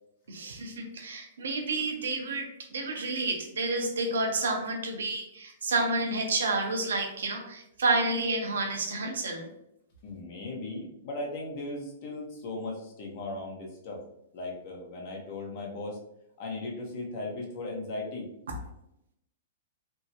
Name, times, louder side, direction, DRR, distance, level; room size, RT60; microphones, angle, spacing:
voice 1, 0.3-9.5 18.5-18.6, right 2 dB, 80° right, 2 dB, 0.7 m, -30 dB
voice 2, 10.0-14.0 14.3-16.0 16.4-18.3, left 2 dB, 50° left, -1 dB, 1.0 m, -37 dB
3.4 x 2.1 x 2.8 m, 0.79 s
hypercardioid pair, 120°, 0 cm